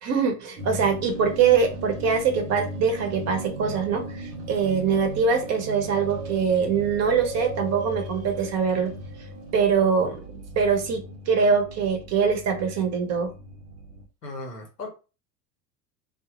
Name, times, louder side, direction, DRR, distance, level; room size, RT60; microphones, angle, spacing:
voice 1, 0.0-8.9 9.5-13.3, right 6 dB, 35° right, 4 dB, 0.7 m, -23 dB
sound 1, 0.6-14.0, right 1 dB, 75° right, 0.8 m, -37 dB
voice 2, 14.2-14.9, left 2 dB, 90° left, 2 dB, 0.9 m, -36 dB
2.1 x 2.0 x 2.9 m, 0.33 s
figure-of-eight pair, 80°, 46 cm